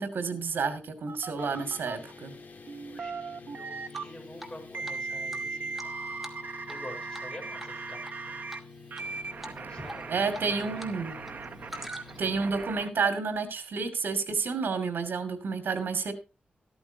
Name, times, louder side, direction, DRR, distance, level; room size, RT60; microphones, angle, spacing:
voice 1, 0.0-2.3 10.1-11.2 12.2-16.1, right 5 dB, 75° right, 9 dB, 2.7 m, -30 dB
sound 1, 1.1-2.0 2.7-4.0 4.7-8.6 8.9-12.9, right 4 dB, 60° right, 1.1 m, -38 dB
sound 2, 1.4-12.4, left 4 dB, 55° left, 2.9 m, -49 dB
voice 2, 2.9-5.7 6.7-8.0 8.2-8.6 9.5-10.8, left 1 dB, 25° left, 2 dB, 5.7 m, -46 dB
Drip, 3.9-4.6 4.8-4.9 5.3-6.8 7.1-7.3 7.6-8.1 8.5-9.0 9.4-9.6 9.9-10.9 11.2-12.3, equal, 5° right, 2.1 m, -45 dB
14.0 x 13.0 x 2.9 m, 0.29 s
wide cardioid pair, 115°, 4 cm